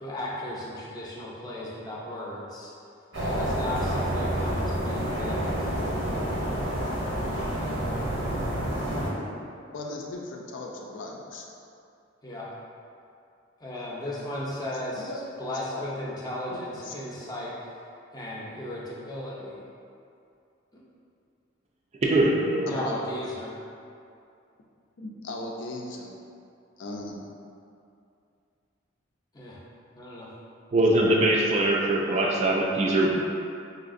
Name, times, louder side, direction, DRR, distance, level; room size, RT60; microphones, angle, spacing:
voice 1, 0.0-2.7 3.3-5.7 12.2-12.5 13.6-15.1 15.4-17.7 18.1-19.6 20.7-20.8 22.7-23.6 29.3-29.6 30.0-30.3, left 1 dB, 20° left, -5 dB, 0.5 m, -35 dB
sound 1, 3.1-9.1, equal, 85° right, 0.9 m, -28 dB
voice 2, 8.7-9.2 9.7-11.5 15.0-15.2 15.7-15.8 16.5-16.9 22.7-23.1 25.0-26.1 26.8-27.2, left 2 dB, 70° left, -1 dB, 0.4 m, -37 dB
voice 3, 22.0-22.7 30.7-33.1, right 1 dB, 35° right, -2 dB, 0.4 m, -22 dB
4.1 x 2.7 x 2.5 m, 2.5 s
head